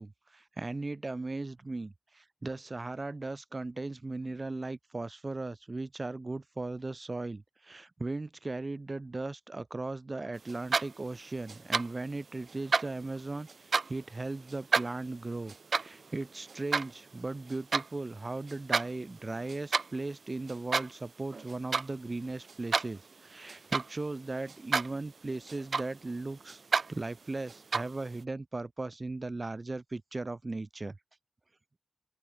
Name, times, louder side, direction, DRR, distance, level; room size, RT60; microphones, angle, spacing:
voice 1, 0.0-26.6 26.9-31.0, right 2 dB, 40° right, 1.6 m, -37 dB
sound 1, 10.5-11.2 11.5-12.1 12.4-14.0 14.5-17.9 18.3-18.9 19.2-19.9 20.5-21.1 21.3-21.9 22.2-24.1 24.5-25.0 25.3-26.2 26.5-26.9 27.5-28.0, right 4 dB, 80° right, 0.7 m, -31 dB
open air
wide cardioid pair, 80°, 0 cm